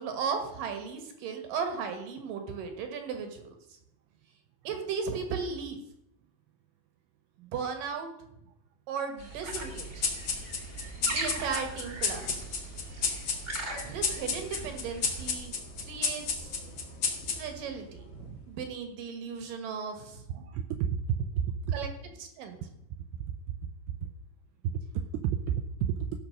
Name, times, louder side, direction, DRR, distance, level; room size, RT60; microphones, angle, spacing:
voice 1, 0.0-3.6 4.6-5.8 7.4-8.1 8.9-10.0 11.1-12.7 13.8-16.5 17.3-20.2 21.7-22.7, right 6 dB, 65° right, 6 dB, 2.4 m, -36 dB
sound 1, 9.2-15.3, right 2 dB, 35° right, 1.1 m, -40 dB
sound 2, 9.5-18.4, left 5 dB, 55° left, 1.7 m, -34 dB
voice 2, 20.3-21.7 24.9-26.1, right 8 dB, 85° right, 7 dB, 2.3 m, -31 dB
15.5 x 5.9 x 6.5 m, 0.81 s
omnidirectional pair, 5.5 m